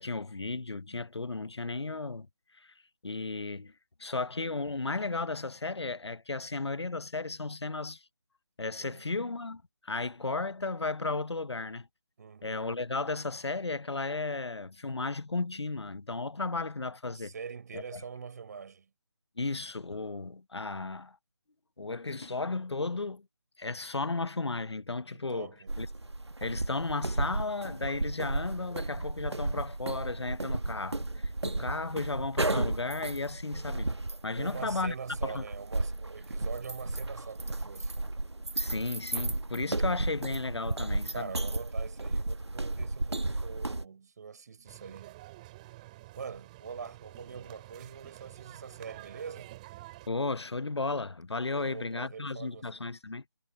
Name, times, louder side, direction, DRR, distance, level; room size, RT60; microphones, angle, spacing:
voice 1, 0.0-2.3 2.6-2.7 3.0-3.7 4.0-8.0 8.6-11.9 12.4-17.3 17.7-18.0 19.4-21.2 21.8-23.2 23.6-25.5 25.8-25.9 26.4-33.9 34.2-34.9 35.2-35.4 38.6-41.3 50.1-53.2, left 3 dB, 80° left, 0.8 m, -34 dB
voice 2, 8.8-9.1 12.2-12.7 17.1-18.9 25.1-25.8 34.4-38.0 41.1-45.2 46.1-49.6 51.5-52.7, right 6 dB, 40° right, 4.1 m, -44 dB
sound 1, 25.7-43.8, right 2 dB, 85° right, 1.6 m, -34 dB
sound 2, 44.7-50.1, right 18 dB, 20° right, 5.3 m, -49 dB
figure-of-eight pair, 160°, 14 cm